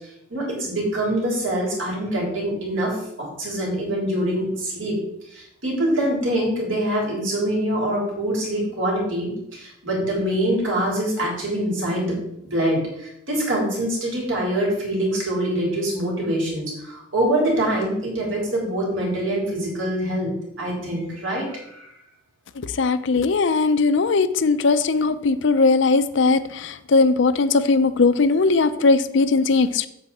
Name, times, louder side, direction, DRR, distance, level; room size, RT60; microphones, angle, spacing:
voice 1, 0.3-5.0 5.3-12.2 12.5-20.3 20.6-21.9, right 1 dB, 70° right, -3 dB, 3.7 m, -24 dB
voice 2, 22.8-29.9, left 3 dB, 60° left, 12 dB, 0.5 m, -19 dB
8.1 x 7.4 x 4.1 m, 0.77 s
head